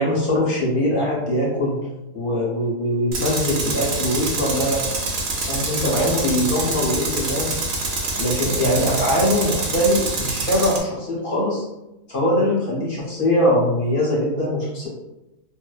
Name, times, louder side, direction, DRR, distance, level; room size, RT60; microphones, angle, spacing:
voice 1, 0.0-1.8 2.1-4.9 5.5-7.6 8.2-11.6 12.1-14.9, left 1 dB, 45° left, -6 dB, 0.8 m, -22 dB
Tools, 3.1-10.8, right 3 dB, 70° right, 0.7 m, -26 dB
2.6 x 2.1 x 2.3 m, 0.95 s
omnidirectional pair, 1.7 m